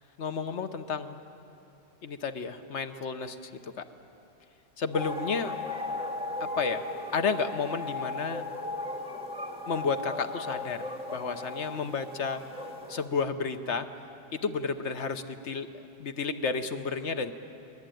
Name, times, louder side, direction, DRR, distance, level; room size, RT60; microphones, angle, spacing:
voice 1, 0.2-1.2 2.0-3.8 4.8-5.6 6.4-6.9 7.1-8.5 9.7-10.8 11.1-12.4 12.9-13.9 14.3-17.3, left 5 dB, 80° left, 9 dB, 1.3 m, -32 dB
sound 1, 4.9-13.1, left 2 dB, 5° right, 2.0 m, -36 dB
24.0 x 20.0 x 9.1 m, 2.8 s
omnidirectional pair, 1.2 m